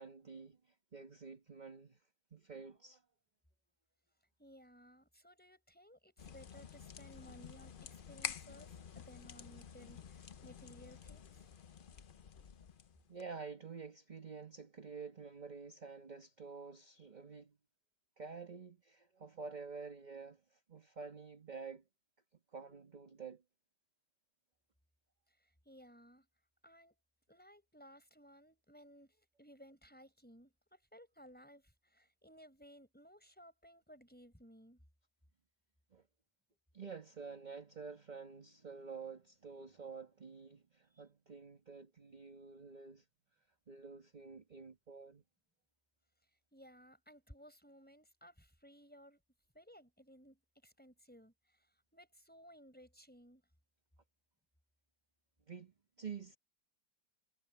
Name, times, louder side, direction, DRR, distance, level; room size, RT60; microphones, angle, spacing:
voice 1, 0.0-2.0 2.3-3.0 13.1-17.6 18.2-21.8 22.5-23.4 35.9-36.0 36.7-43.0 43.7-45.2 55.5-56.4, right 5 dB, 25° right, 1.4 m, -49 dB
voice 2, 4.4-11.5 25.4-26.3 26.6-26.9 27.3-34.8 40.9-41.0 46.5-49.2 49.5-53.4, equal, 5° left, 4.9 m, -59 dB
sound 1, 6.2-13.2, left 7 dB, 80° left, 0.4 m, -49 dB
omnidirectional pair, 2.0 m